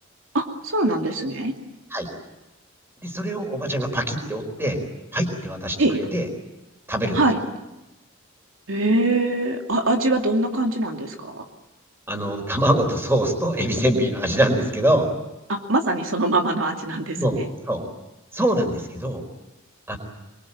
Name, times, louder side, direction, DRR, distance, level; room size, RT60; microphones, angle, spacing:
voice 1, 0.3-1.5 5.8-6.0 7.1-7.4 8.7-11.4 15.5-17.2, right 2 dB, 85° right, 3 dB, 2.6 m, -22 dB
voice 2, 3.0-4.8 5.1-6.3 6.9-7.2 12.1-15.1 17.1-17.4 17.6-17.8 18.3-19.2 19.9-20.0, right 1 dB, 10° right, 5 dB, 4.6 m, -23 dB
25.5 x 23.0 x 8.7 m, 0.97 s
head